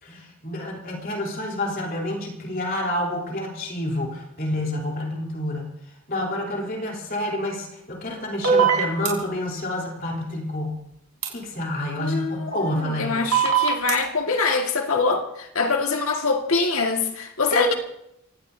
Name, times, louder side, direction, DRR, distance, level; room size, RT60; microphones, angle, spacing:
voice 1, 0.0-5.7 6.1-10.8 11.3-13.2 17.5-17.6, left 1 dB, 40° left, 3.5 m, -28 dB
sound 1, 8.4-9.1 11.2-11.3 13.3-13.9, right 7 dB, 85° right, 4.5 m, -19 dB
voice 2, 12.0-17.7, left 4 dB, 70° left, 1.9 m, -24 dB
27.5 x 17.0 x 2.7 m
head